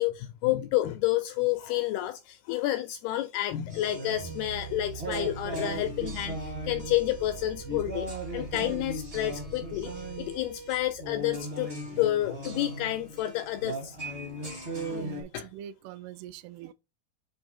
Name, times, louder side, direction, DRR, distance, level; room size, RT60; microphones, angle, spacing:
voice 1, 0.0-14.0 15.3-15.5, left 14 dB, 85° left, 2.2 m, -30 dB
sound 1, 3.7-15.2, right 1 dB, 35° right, 0.9 m, -38 dB
sound 2, 4.1-11.3, right 6 dB, 65° right, 2.1 m, -44 dB
voice 2, 14.9-16.7, right 12 dB, 85° right, 2.3 m, -43 dB
7.6 x 3.2 x 4.2 m
omnidirectional pair, 4.9 m